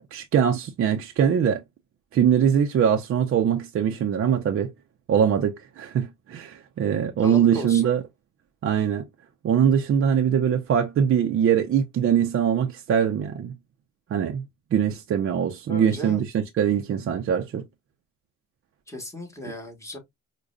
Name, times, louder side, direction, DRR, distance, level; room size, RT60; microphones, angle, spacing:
voice 1, 0.1-1.6 2.1-4.7 5.1-8.0 8.6-9.1 9.4-13.5 14.1-14.4 14.7-17.6, right 8 dB, 45° right, 0.5 m, -22 dB
voice 2, 7.2-7.9 15.7-16.2 18.9-20.0, left 1 dB, 10° left, 1.5 m, -36 dB
4.7 x 2.2 x 2.4 m
cardioid pair, 90°, 30 cm